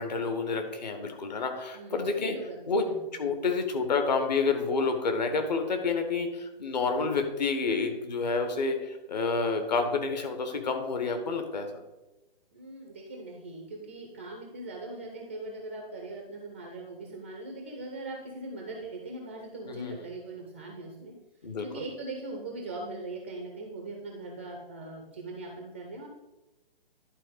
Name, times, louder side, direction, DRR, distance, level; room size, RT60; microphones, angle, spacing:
voice 1, 0.0-2.4 2.7-2.8 3.1-11.7 19.7-19.9 21.4-21.8, left 4 dB, 45° left, 5 dB, 1.4 m, -29 dB
voice 2, 1.7-3.4 12.5-21.1 21.6-26.1, right 2 dB, 15° right, 1 dB, 0.4 m, -40 dB
11.0 x 3.9 x 5.0 m, 1.0 s
figure-of-eight pair, 135°, 29 cm